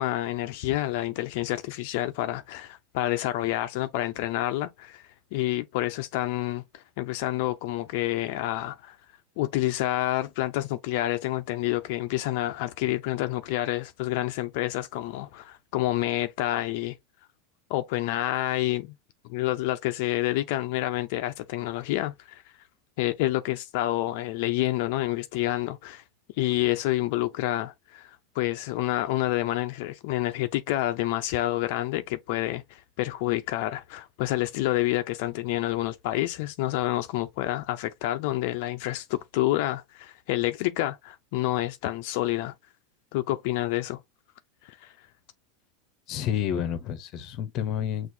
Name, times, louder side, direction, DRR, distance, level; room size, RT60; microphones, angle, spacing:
voice 1, 0.0-9.0 9.4-17.0 17.7-19.0 19.3-22.4 23.0-26.0 26.4-42.5 43.1-44.0 44.6-44.9, left 16 dB, 60° left, 0.4 m, -28 dB
voice 2, 46.1-48.1, left 9 dB, 40° left, 0.8 m, -29 dB
6.1 x 2.4 x 2.6 m
supercardioid pair, 155°, 0 cm